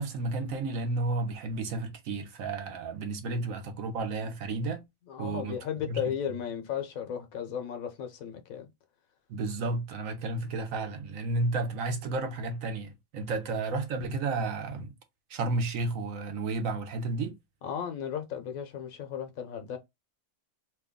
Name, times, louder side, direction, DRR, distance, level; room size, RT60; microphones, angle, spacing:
voice 1, 0.0-4.8 5.2-5.6 5.9-6.0 9.3-14.9 15.3-17.4, right 3 dB, 80° right, 1.2 m, -32 dB
voice 2, 5.1-8.7 17.6-19.8, left 8 dB, 85° left, 1.2 m, -35 dB
3.1 x 2.3 x 3.6 m
omnidirectional pair, 1.4 m